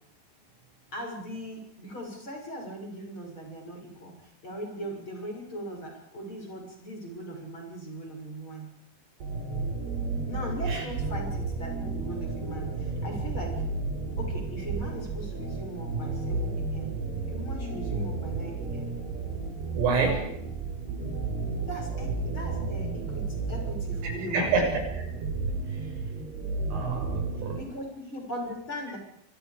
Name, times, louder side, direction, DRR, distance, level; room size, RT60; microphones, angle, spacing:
voice 1, 0.9-8.7 10.2-13.6 14.2-17.0 17.3-18.9 21.7-24.5 27.5-29.0, equal, 25° left, 1 dB, 7.2 m, -39 dB
sound 1, 9.2-27.6, right 3 dB, 55° right, 6.8 m, -32 dB
voice 2, 19.7-20.2 24.0-24.8 26.7-27.6, right 4 dB, 90° right, 2 dB, 9.2 m, -27 dB
26.5 x 25.5 x 5.2 m, 0.71 s
omnidirectional pair, 5.6 m